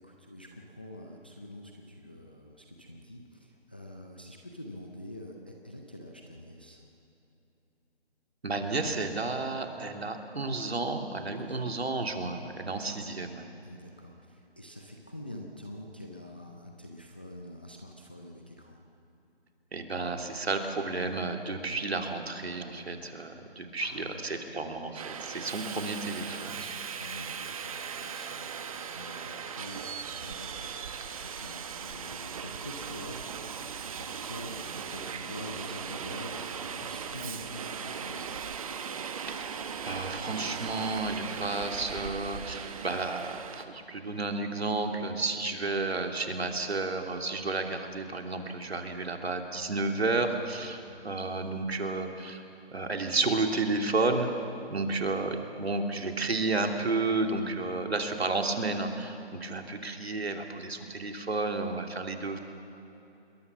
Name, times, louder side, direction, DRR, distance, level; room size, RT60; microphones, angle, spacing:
voice 1, 0.0-6.8 11.4-11.6 13.6-18.8 23.8-24.4 26.4-29.9 30.2-33.2 34.0-38.5 50.6-50.7, left 1 dB, 10° left, 1 dB, 0.5 m, -46 dB
voice 2, 8.4-13.5 19.7-26.6 39.3-39.5 39.8-52.4 52.7-54.3 54.7-62.4, right 3 dB, 75° right, 4 dB, 3.0 m, -32 dB
Subway metro underground, 24.9-43.6, right 6 dB, 35° right, 1.2 m, -38 dB
27.5 x 21.0 x 7.2 m, 3.0 s
figure-of-eight pair, 155°, 32 cm